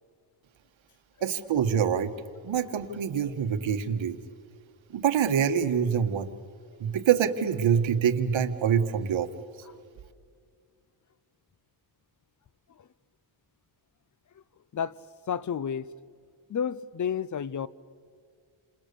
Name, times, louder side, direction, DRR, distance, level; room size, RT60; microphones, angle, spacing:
voice 1, 1.2-2.1 2.4-4.2 4.9-6.3 6.8-9.3, right 8 dB, 70° right, 1.7 m, -25 dB
voice 2, 14.7-15.9 16.5-17.7, left 7 dB, 40° left, 0.7 m, -31 dB
28.5 x 27.5 x 7.0 m
cardioid pair, 125°, 48 cm